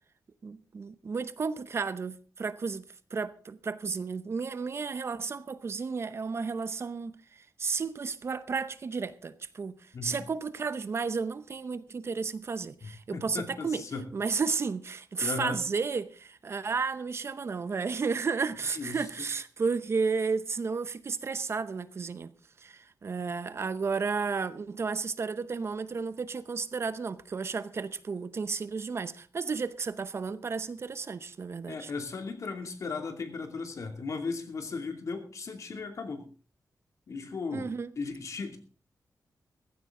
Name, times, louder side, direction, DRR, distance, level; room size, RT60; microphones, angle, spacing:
voice 1, 0.4-2.8 3.1-13.8 14.1-22.3 22.6-31.9 37.5-37.9, right 5 dB, 45° right, 0.8 m, -33 dB
voice 2, 9.9-10.3 12.8-14.1 15.2-15.6 18.7-19.0 31.7-36.3 37.1-37.7 38.0-38.6, left 4 dB, 55° left, 2.6 m, -36 dB
15.5 x 15.0 x 3.8 m
wide cardioid pair, 145°, 6 cm